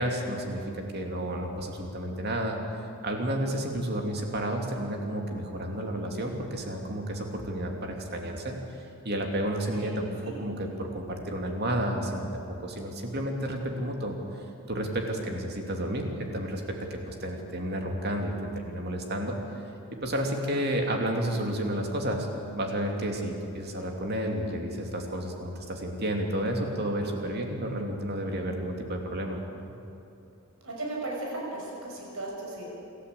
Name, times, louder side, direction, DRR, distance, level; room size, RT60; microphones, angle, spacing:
voice 1, 0.0-2.6 3.0-14.2 14.7-18.3 18.6-19.4 19.9-22.3 22.6-29.4, right 1 dB, 45° right, 2 dB, 2.7 m, -31 dB
voice 2, 30.6-32.7, right 2 dB, 70° right, -2 dB, 6.2 m, -36 dB
27.0 x 13.5 x 8.4 m, 2.8 s
head